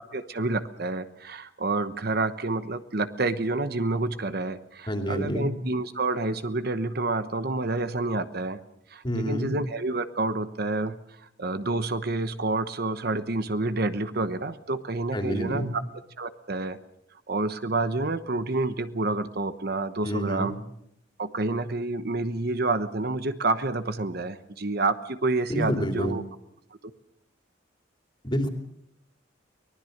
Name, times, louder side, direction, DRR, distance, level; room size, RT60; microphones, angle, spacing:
voice 1, 0.1-8.6 8.9-15.6 16.2-16.8 17.3-20.5 21.2-26.2, right 2 dB, 55° right, 11 dB, 1.1 m, -28 dB
voice 2, 4.9-5.5 9.0-9.5 15.1-15.7 20.0-20.5 25.5-26.1 28.2-28.5, equal, 25° left, 4 dB, 2.9 m, -28 dB
24.0 x 19.5 x 6.6 m, 0.75 s
head